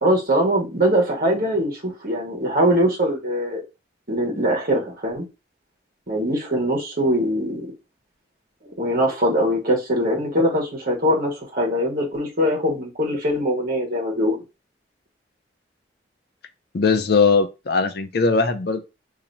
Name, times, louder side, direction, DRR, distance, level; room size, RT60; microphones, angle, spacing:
voice 1, 0.0-3.6 4.1-5.2 6.1-7.7 8.6-14.4, equal, 50° right, 1.4 m, -22 dB
voice 2, 16.7-18.8, left 4 dB, 60° left, 0.6 m, -19 dB
2.9 x 2.8 x 3.9 m
head